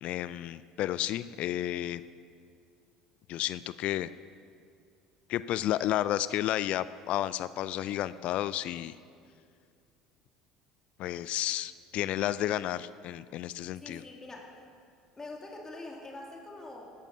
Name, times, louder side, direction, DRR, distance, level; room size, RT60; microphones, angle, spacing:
voice 1, 0.0-2.0 3.3-4.1 5.3-8.9 11.0-14.0, left 13 dB, 60° left, 16 dB, 0.4 m, -32 dB
voice 2, 13.8-14.5 15.2-16.9, left 2 dB, 25° left, -1 dB, 2.4 m, -44 dB
13.5 x 12.0 x 5.5 m, 2.3 s
hypercardioid pair, 70°, 2 cm